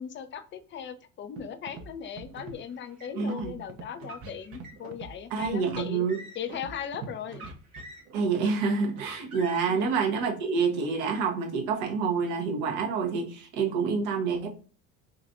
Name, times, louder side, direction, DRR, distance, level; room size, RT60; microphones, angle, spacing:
voice 1, 0.0-6.0 6.3-7.5 9.7-10.0, left 8 dB, 25° left, 10 dB, 0.5 m, -38 dB
Scratching (performance technique), 1.4-1.5 1.7-1.9 2.2-2.6 3.3-3.8 4.2-4.7 4.9-5.1 5.4-5.8 6.5-7.1 7.4-7.8, right 4 dB, 35° right, 0.7 m, -43 dB
Car, 2.3-3.3 3.9-5.0 5.6-6.6 7.2-8.3 8.9-9.8, right 3 dB, 75° right, 1.3 m, -46 dB
voice 2, 3.2-3.5 5.3-6.2 8.1-14.5, right 5 dB, 60° right, 3 dB, 1.0 m, -27 dB
5.2 x 2.5 x 2.6 m, 0.39 s
figure-of-eight pair, 60°, 44 cm